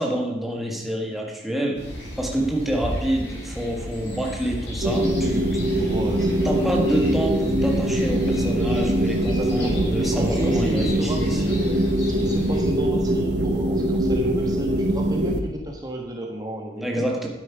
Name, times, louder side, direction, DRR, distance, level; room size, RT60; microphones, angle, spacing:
voice 1, 0.0-5.9 6.4-11.5 16.8-17.3, right 1 dB, ahead, 0 dB, 1.6 m, -27 dB
sound 1, 1.7-12.6, equal, 70° left, 4.8 m, -35 dB
sound 2, 4.8-15.4, right 1 dB, 60° right, 1.1 m, -23 dB
voice 2, 5.8-6.5 9.2-17.0, right 1 dB, 20° right, 0 dB, 1.4 m, -33 dB
12.0 x 9.7 x 4.8 m, 1.0 s
head